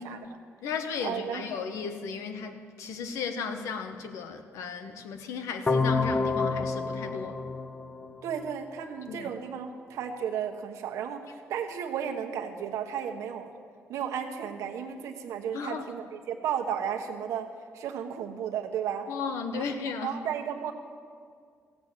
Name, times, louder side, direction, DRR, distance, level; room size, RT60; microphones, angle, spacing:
voice 1, 0.0-7.5 9.1-9.3 15.5-15.8 19.1-20.2, left 5 dB, 90° left, 7 dB, 1.1 m, -35 dB
voice 2, 1.0-1.5 8.2-13.5 13.9-17.5 17.7-19.1 19.5-19.7 20.0-20.7, right 8 dB, 90° right, 5 dB, 1.1 m, -34 dB
sound 1, 5.7-8.6, left 3 dB, 20° left, 0.8 m, -29 dB
15.0 x 8.1 x 7.4 m, 2.1 s
cardioid pair, 100°, 5 cm